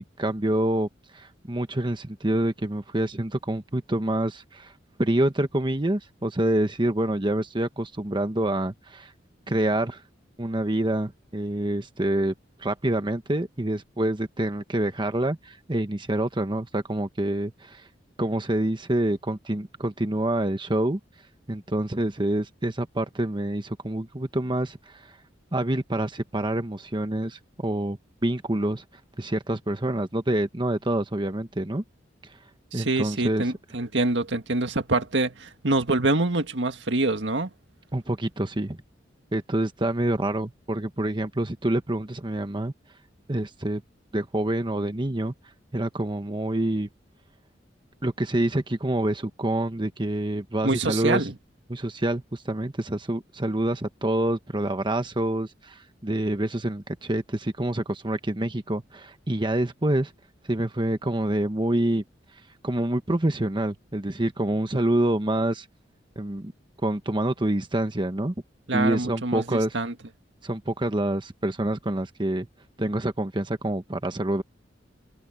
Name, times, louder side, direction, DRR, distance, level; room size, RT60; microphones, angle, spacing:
voice 1, 0.0-4.7 5.0-9.1 9.5-10.0 10.4-12.3 12.6-17.9 18.2-21.0 21.5-25.1 25.5-28.8 29.2-31.8 32.3-32.4 32.7-33.5 37.9-38.8 39.3-42.7 43.3-43.8 44.1-45.3 45.7-46.9 48.0-51.3 51.7-60.1 60.5-62.0 62.6-65.7 66.2-66.5 66.8-68.3 68.7-69.8 70.4-72.5 72.8-74.4, right 1 dB, 25° right, 1.2 m, -27 dB
voice 2, 32.7-37.5 50.6-51.3 68.7-69.9, right 2 dB, 75° right, 1.9 m, -25 dB
head